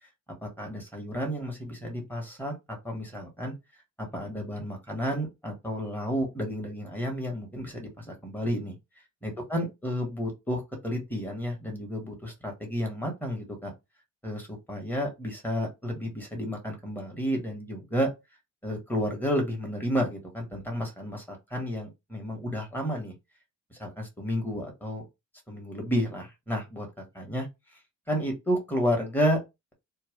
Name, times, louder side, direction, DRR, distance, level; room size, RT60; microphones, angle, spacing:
voice 1, 0.4-3.5 4.0-8.7 9.2-13.7 14.2-18.1 18.6-23.1 23.7-25.1 25.5-27.5 28.1-29.4, equal, 5° left, 1.7 m, -31 dB
3.4 x 2.2 x 3.6 m
cardioid pair, 90°, 30 cm